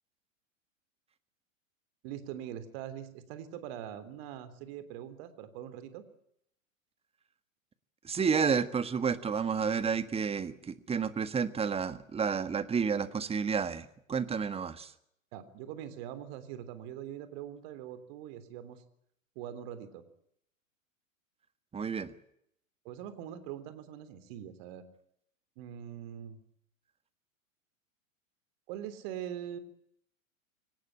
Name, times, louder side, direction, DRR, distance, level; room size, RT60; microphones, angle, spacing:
voice 1, 2.0-6.0 15.3-18.8 19.4-20.0 22.9-24.8 25.6-26.4 28.7-29.6, right 10 dB, 45° right, 11 dB, 3.5 m, -42 dB
voice 2, 8.0-14.9 21.7-22.1, right 6 dB, 15° right, 13 dB, 1.7 m, -31 dB
24.0 x 19.0 x 8.9 m, 0.72 s
figure-of-eight pair, 100°, 40 cm